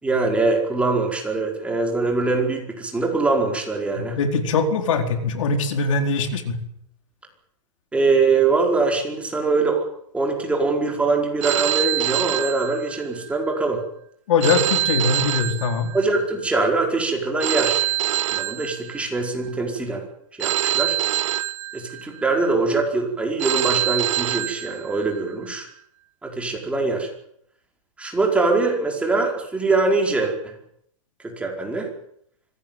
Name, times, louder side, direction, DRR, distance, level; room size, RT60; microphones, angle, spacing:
voice 1, 0.0-4.2 7.9-9.8 10.1-13.8 15.9-17.9 18.3-20.0 20.4-21.0 21.7-25.7 26.2-27.1 28.0-30.5 31.4-31.9, right 3 dB, 5° right, 1 dB, 4.9 m, -23 dB
voice 2, 4.0-6.6 14.3-15.9, left 4 dB, 65° left, 6 dB, 4.5 m, -22 dB
Telephone, 11.4-13.3 14.4-16.3 17.4-19.3 20.4-22.3 23.4-25.3, right 14 dB, 60° right, 0.9 m, -25 dB
25.0 x 18.0 x 9.2 m, 0.71 s
hypercardioid pair, 145°, 18 cm